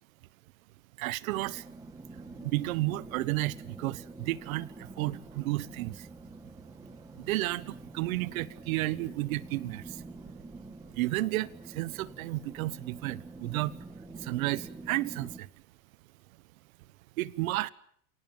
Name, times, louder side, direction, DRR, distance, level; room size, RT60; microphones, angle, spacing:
voice 1, 1.0-1.7 2.2-6.1 7.1-10.0 10.9-13.9 14.1-15.5 17.2-17.7, right 18 dB, 75° right, 1.3 m, -32 dB
sound 1, 1.3-15.4, right 3 dB, 10° right, 2.3 m, -47 dB
28.0 x 18.5 x 8.9 m
supercardioid pair, 140°, 42 cm